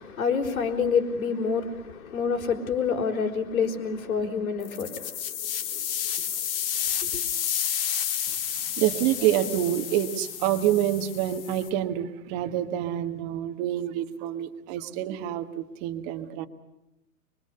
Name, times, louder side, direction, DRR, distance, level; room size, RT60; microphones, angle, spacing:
voice 1, 0.0-4.9 7.1-7.2, left 6 dB, 65° left, 4.3 m, -27 dB
sound 1, 4.6-11.7, left 9 dB, 40° left, 2.0 m, -31 dB
voice 2, 8.8-16.5, right 12 dB, 30° right, 1.5 m, -27 dB
24.5 x 23.0 x 6.8 m
hypercardioid pair, 150°, 45 cm